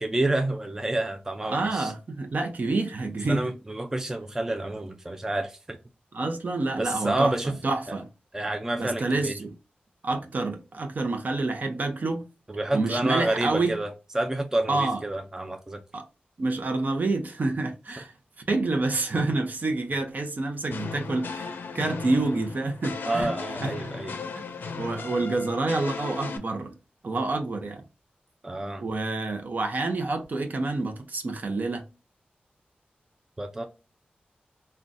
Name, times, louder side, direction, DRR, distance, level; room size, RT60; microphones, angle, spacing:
voice 1, 0.0-1.9 3.3-5.8 6.8-7.6 8.3-9.3 12.5-15.8 23.1-24.1 28.4-28.8 33.4-33.6, right 1 dB, 15° right, 0.4 m, -29 dB
voice 2, 1.4-3.5 6.1-8.1 8.8-9.5 10.0-12.3 12.7-13.8 14.7-15.0 15.9-16.1 16.4-18.1 18.5-23.3 23.6-23.9 24.3-24.4 24.8-26.7 27.0-27.8 28.8-31.8, right 3 dB, 55° right, 0.6 m, -28 dB
sound 1, 20.7-26.4, left 4 dB, 85° left, 0.4 m, -36 dB
3.7 x 2.2 x 2.5 m
wide cardioid pair, 90°, 3 cm